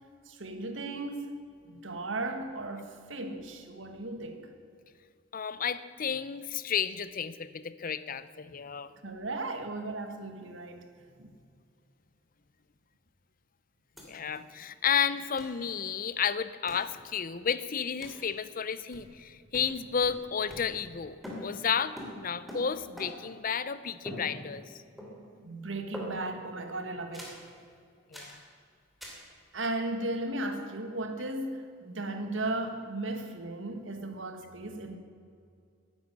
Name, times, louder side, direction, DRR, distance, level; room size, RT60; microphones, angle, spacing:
voice 1, 0.3-1.4 1.7-4.5 9.0-10.9 11.2-11.3 25.4-27.4 29.5-35.0, right 2 dB, 80° right, 1.6 m, -36 dB
voice 2, 5.3-8.9 14.0-24.6 28.1-28.4, left 7 dB, 45° left, 0.6 m, -32 dB
sound 1, 14.0-14.1 14.3-14.4 15.4-15.6 16.7-16.9 18.0-18.3 18.9-19.3 19.5-21.0 21.2-23.4 24.1-24.7 25.0-25.4 25.9-26.5 27.1-27.5 28.1-28.4 29.0-29.3, equal, ahead, 3.0 m, -44 dB
11.5 x 10.5 x 9.7 m
head